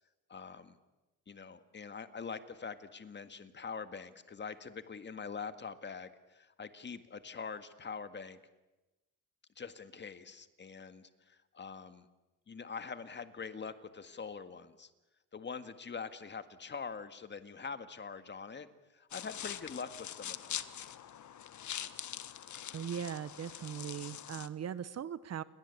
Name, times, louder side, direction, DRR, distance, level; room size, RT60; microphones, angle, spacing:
voice 1, 0.3-0.8 1.3-8.4 9.6-12.1 12.5-14.9 15.3-20.6, left 5 dB, 30° left, 10 dB, 1.9 m, -44 dB
sound 1, 19.1-24.5, left 10 dB, 50° left, 1.5 m, -43 dB
voice 2, 22.7-25.4, right 8 dB, 45° right, 16 dB, 1.0 m, -39 dB
29.5 x 23.0 x 8.4 m, 1.0 s
cardioid pair, 125°, 37 cm